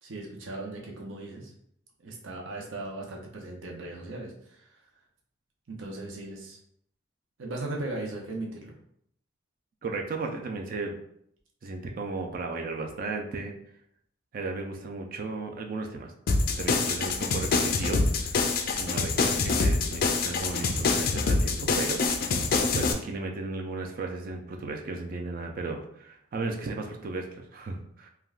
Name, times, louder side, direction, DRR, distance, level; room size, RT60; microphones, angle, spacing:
voice 1, 0.0-1.5 2.0-4.8 5.7-6.6 7.4-8.7, right 2 dB, 85° right, 0 dB, 0.6 m, -38 dB
voice 2, 9.8-11.0 11.6-13.5 14.3-16.1 16.6-18.4 18.8-22.0 22.3-22.4 22.7-28.1, right 3 dB, 45° right, 3 dB, 0.3 m, -35 dB
sound 1, 16.3-22.9, left 4 dB, 50° left, 0.3 m, -26 dB
3.4 x 2.2 x 2.4 m, 0.70 s
head